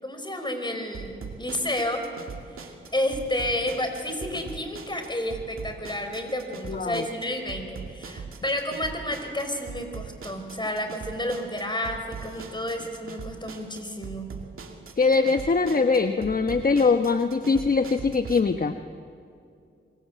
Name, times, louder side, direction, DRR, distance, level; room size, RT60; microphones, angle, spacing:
voice 1, 0.0-2.0 2.5-14.3, left 1 dB, 20° left, 6 dB, 5.5 m, -31 dB
sound 1, 0.9-18.4, right 5 dB, 90° right, 2.4 m, -41 dB
voice 2, 6.7-7.0 15.0-18.8, left 4 dB, 45° left, 8 dB, 1.1 m, -22 dB
26.0 x 23.5 x 8.3 m, 2.5 s
cardioid pair, 55°, 21 cm